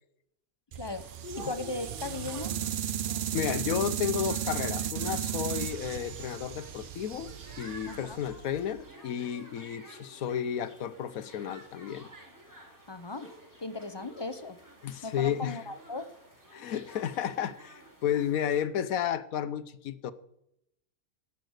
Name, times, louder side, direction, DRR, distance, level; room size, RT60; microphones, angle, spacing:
voice 1, 0.7-1.1 1.4-2.5 7.9-8.2 12.9-13.3 13.6-14.6 15.0-16.1, left 3 dB, 25° left, 11 dB, 0.5 m, -37 dB
sound 1, 0.7-8.8, right 9 dB, 80° right, 0.4 m, -35 dB
sound 2, 0.8-18.6, right 1 dB, 10° right, 2.7 m, -51 dB
voice 2, 3.3-7.3 7.6-12.1 14.8-15.6 16.5-20.1, left 9 dB, 70° left, 14 dB, 1.1 m, -32 dB
17.0 x 5.8 x 8.0 m, 0.80 s
omnidirectional pair, 1.5 m